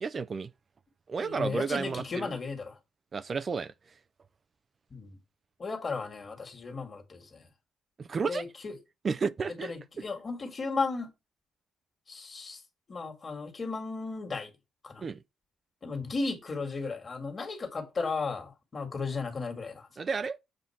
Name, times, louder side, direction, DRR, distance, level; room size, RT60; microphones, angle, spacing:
voice 1, 0.0-0.5 1.1-2.3 3.1-3.7 8.0-8.4 9.0-9.7 15.0-15.2 20.0-20.4, right 5 dB, 40° right, 0.4 m, -32 dB
voice 2, 1.2-2.8 4.9-5.2 5.6-7.5 8.2-8.8 9.6-11.1 12.1-12.6 12.9-14.5 14.8-15.1 15.8-19.9, left 4 dB, 40° left, 1.9 m, -35 dB
7.6 x 2.6 x 5.7 m
cardioid pair, 90°, 0 cm